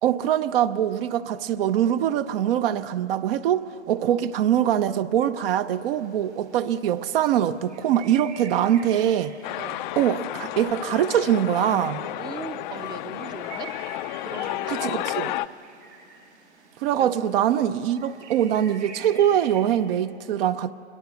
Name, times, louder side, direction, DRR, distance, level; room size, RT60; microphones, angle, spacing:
voice 1, 0.0-9.3 10.0-12.0 14.7-15.3 16.8-20.7, right 10 dB, 55° right, 0.8 m, -23 dB
sound 1, 5.7-19.6, right 6 dB, 90° right, 5.0 m, -48 dB
sound 2, 9.4-15.5, left 15 dB, 45° left, 0.5 m, -32 dB
voice 2, 12.2-13.7 14.2-15.5 17.0-17.1, right 6 dB, 10° right, 0.7 m, -40 dB
24.5 x 22.0 x 7.1 m
hypercardioid pair, 125°, 35 cm